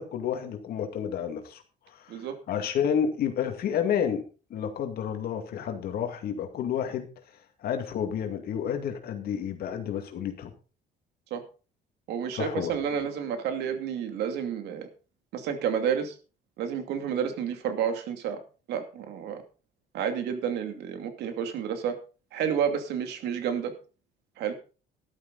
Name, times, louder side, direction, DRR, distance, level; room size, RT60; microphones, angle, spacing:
voice 1, 0.0-1.6 1.9-4.2 4.5-7.1 7.6-10.5 12.3-12.8, left 8 dB, 65° left, 5 dB, 2.2 m, -30 dB
voice 2, 12.1-14.9 15.3-16.1 16.6-18.4 18.7-19.4 19.9-21.9 22.3-23.7 24.4-24.5, right 8 dB, 80° right, 7 dB, 2.6 m, -30 dB
13.0 x 12.0 x 4.0 m, 0.35 s
cardioid pair, 110°, 17 cm